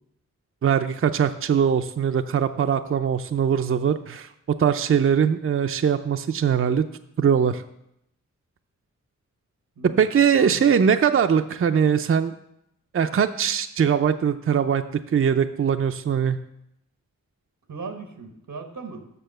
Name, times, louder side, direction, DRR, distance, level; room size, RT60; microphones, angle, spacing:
voice 1, 0.6-6.8 7.2-7.6 9.8-12.3 12.9-16.4, right 7 dB, 45° right, 8 dB, 0.4 m, -21 dB
voice 2, 9.8-10.8 17.7-19.0, right 4 dB, 90° right, 5 dB, 1.2 m, -38 dB
6.8 x 5.4 x 6.5 m, 0.79 s
cardioid pair, 45°, 32 cm